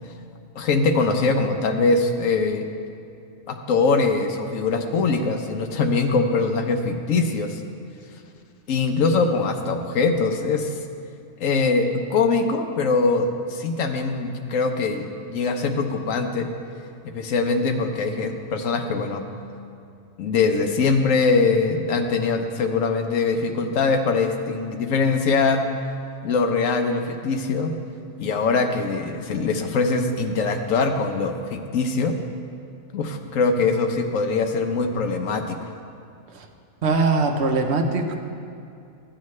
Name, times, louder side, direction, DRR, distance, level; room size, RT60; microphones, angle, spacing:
voice 1, 0.6-2.6 3.5-7.6 8.7-10.7 11.4-16.5 17.1-19.2 20.2-25.6 26.2-27.7 28.2-32.1 32.9-35.7, left 4 dB, 75° left, 5 dB, 1.1 m, -22 dB
voice 2, 36.8-38.2, right 3 dB, 60° right, 4 dB, 1.0 m, -21 dB
14.5 x 8.8 x 3.2 m, 2.5 s
omnidirectional pair, 1.4 m